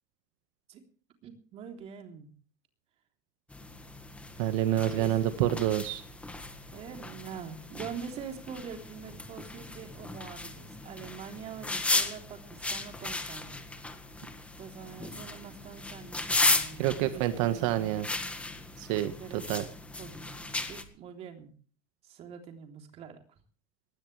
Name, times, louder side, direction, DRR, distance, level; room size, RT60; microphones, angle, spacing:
voice 1, 1.2-2.3 4.9-5.4 6.7-13.6 14.6-18.0 19.0-19.6 20.0-21.5 22.0-23.2, right 7 dB, 40° right, 4 dB, 3.4 m, -44 dB
sound 1, 3.5-20.8, left 2 dB, 5° left, 1.6 m, -35 dB
voice 2, 4.4-6.0 16.8-18.1 18.8-19.1 19.5-19.6, right 12 dB, 85° right, 9 dB, 1.6 m, -27 dB
20.0 x 16.5 x 3.3 m, 0.42 s
cardioid pair, 160°, 16 cm